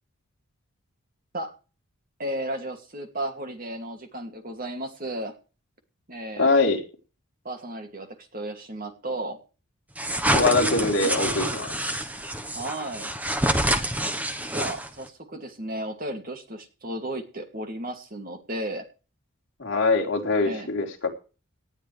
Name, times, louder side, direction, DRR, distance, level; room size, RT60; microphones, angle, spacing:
voice 1, 2.2-5.3 6.1-6.5 7.4-9.4 12.5-13.1 14.5-18.8 20.4-20.7, right 1 dB, 40° right, 5 dB, 2.5 m, -34 dB
voice 2, 6.4-6.8 10.3-12.0 19.6-21.1, left 3 dB, 60° left, 0 dB, 3.7 m, -23 dB
sound 1, 10.0-15.1, right 1 dB, 5° right, 1.1 m, -27 dB
18.5 x 12.5 x 3.4 m, 0.34 s
head